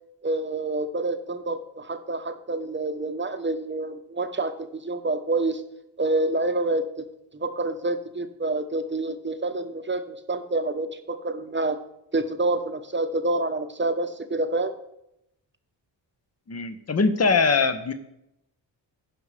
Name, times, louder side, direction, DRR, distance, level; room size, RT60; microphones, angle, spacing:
voice 1, 0.2-5.6 6.0-7.1 7.3-11.8 12.1-14.7, right 2 dB, 25° right, 8 dB, 1.0 m, -27 dB
voice 2, 16.5-17.9, left 4 dB, 35° left, 10 dB, 1.0 m, -22 dB
15.5 x 5.4 x 3.4 m, 0.82 s
cardioid pair, 60°, 46 cm